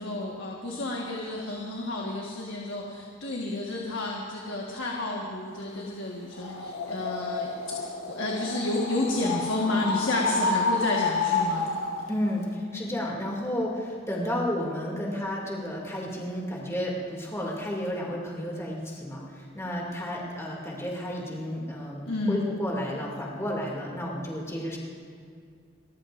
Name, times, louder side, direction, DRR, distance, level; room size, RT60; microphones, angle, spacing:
voice 1, 0.0-11.7 22.0-22.4, left 2 dB, 65° left, -2 dB, 1.5 m, -31 dB
sound 1, 6.3-12.1, left 3 dB, 85° left, 1.5 m, -29 dB
voice 2, 12.1-24.8, equal, 15° left, -3 dB, 2.5 m, -32 dB
30.0 x 14.0 x 2.6 m, 2.3 s
head